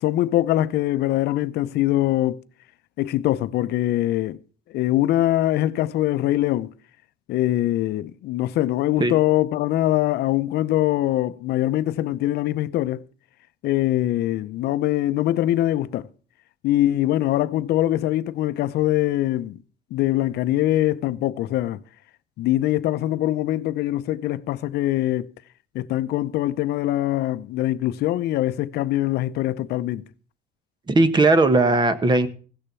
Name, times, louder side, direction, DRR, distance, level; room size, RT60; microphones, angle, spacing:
voice 1, 0.0-2.4 3.0-4.4 4.7-6.7 7.3-13.0 13.6-16.1 16.6-19.6 19.9-21.8 22.4-25.3 25.7-30.0, left 14 dB, 75° left, 0.7 m, -23 dB
voice 2, 30.9-32.3, right 2 dB, 25° right, 1.3 m, -18 dB
16.0 x 6.8 x 6.8 m
cardioid pair, 110°, 17 cm